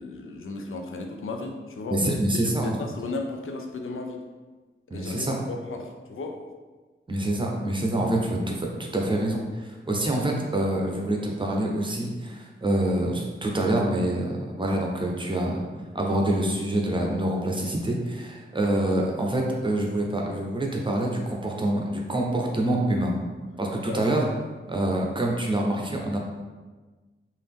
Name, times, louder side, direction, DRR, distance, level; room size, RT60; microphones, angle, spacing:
voice 1, 0.0-2.0 2.3-4.2 4.9-6.4 23.9-24.1, left 3 dB, 80° left, 3 dB, 0.5 m, -35 dB
voice 2, 1.9-2.8 4.9-5.4 7.1-15.6 15.9-23.1 23.6-24.3 24.7-26.2, right 1 dB, 25° right, 0 dB, 0.6 m, -26 dB
3.9 x 2.5 x 3.5 m, 1.3 s
wide cardioid pair, 130°, 21 cm